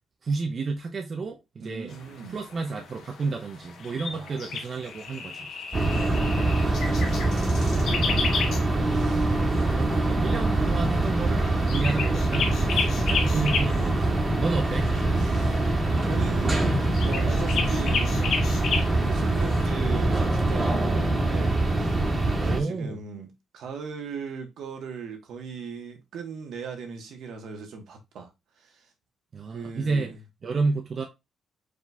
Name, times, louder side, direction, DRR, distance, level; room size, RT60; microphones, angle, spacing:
voice 1, 0.2-2.0 2.3-5.5 9.5-14.1 14.4-14.9 22.4-23.0 29.3-30.1 30.4-31.0, right 4 dB, 45° right, 0.6 m, -31 dB
voice 2, 1.6-2.4 4.0-4.5 5.8-10.9 14.5-14.8 15.2-15.7 16.1-18.5 18.9-22.0 22.3-23.3 23.5-28.3 28.6-28.9 29.5-30.2, right 5 dB, 75° right, 1.2 m, -39 dB
sound 1, 1.9-19.7, left 5 dB, 70° left, 1.0 m, -34 dB
sound 2, 5.7-22.6, right 2 dB, 25° right, 1.4 m, -24 dB
4.9 x 3.9 x 2.3 m
cardioid pair, 90°, 0 cm